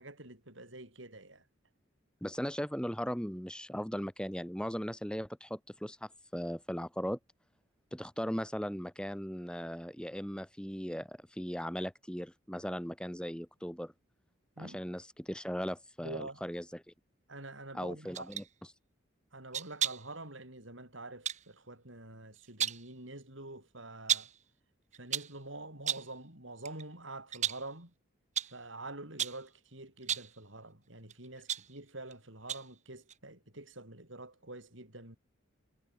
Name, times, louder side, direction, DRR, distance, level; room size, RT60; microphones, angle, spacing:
voice 1, 0.0-1.5 14.6-14.8 16.0-16.5 17.3-18.3 19.3-24.3 24.9-27.9 28.5-35.2, right 2 dB, 75° right, 7.9 m, -47 dB
voice 2, 2.2-7.2 7.9-13.9 14.6-16.8 17.7-18.4, equal, 5° left, 2.5 m, -38 dB
sound 1, 18.1-18.5 19.5-20.1 21.3-21.5 22.4-22.9 24.1-24.4 24.9-25.4 25.9-26.2 26.6-26.8 27.3-27.7 28.4-28.6 29.2-29.5 30.0-30.4 31.1-32.1 32.5-32.8 33.1-33.2, right 9 dB, 35° right, 2.0 m, -35 dB
head